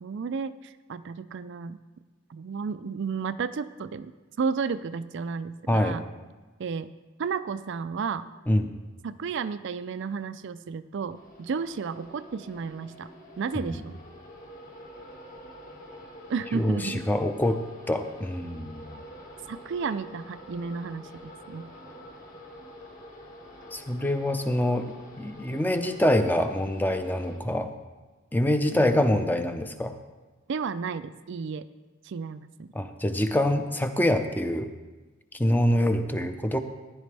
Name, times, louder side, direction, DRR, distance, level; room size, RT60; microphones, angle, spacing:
voice 1, 0.0-1.8 2.3-4.1 4.4-6.0 6.6-6.9 7.2-8.3 9.0-13.1 13.4-14.0 16.3-17.0 19.5-21.7 28.7-29.0 30.5-31.7 32.0-32.7, right 5 dB, 55° right, 12 dB, 0.4 m, -32 dB
voice 2, 5.7-6.0 8.5-8.7 13.6-13.8 16.5-19.0 23.7-27.7 28.3-29.9 32.7-34.7 35.3-36.6, left 1 dB, 10° left, 8 dB, 0.6 m, -25 dB
sound 1, 11.1-27.4, equal, 40° left, 1.9 m, -47 dB
15.5 x 10.0 x 3.4 m, 1.2 s
head